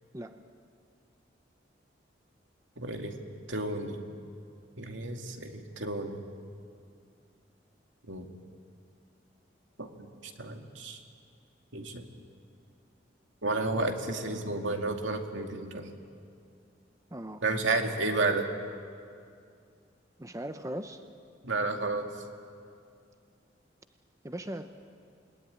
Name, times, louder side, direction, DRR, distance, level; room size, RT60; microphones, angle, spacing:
voice 1, 2.8-3.1 3.5-4.0 4.8-6.2 8.1-8.3 9.8-10.1 10.4-11.0 11.7-12.0 13.4-15.9 17.4-18.5 21.4-22.1, right 2 dB, 80° right, 3 dB, 2.4 m, -31 dB
voice 2, 17.1-17.4 20.2-21.0 24.2-24.7, right 1 dB, 15° right, 8 dB, 0.8 m, -38 dB
28.0 x 20.5 x 9.8 m, 2.4 s
head